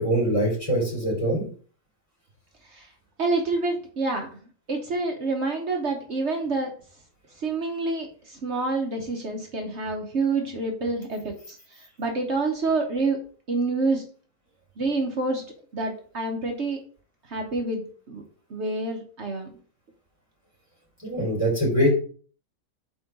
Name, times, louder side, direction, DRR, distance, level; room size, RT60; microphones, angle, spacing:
voice 1, 0.0-1.4 21.0-21.9, equal, 25° left, -4 dB, 3.1 m, -23 dB
voice 2, 3.2-4.3 4.7-6.7 7.4-11.6 12.0-13.2 13.5-14.0 14.8-15.4 15.7-16.8 17.3-18.2 18.5-19.5, right 3 dB, 60° right, 2 dB, 1.2 m, -27 dB
4.5 x 4.3 x 5.1 m, 0.43 s
omnidirectional pair, 1.4 m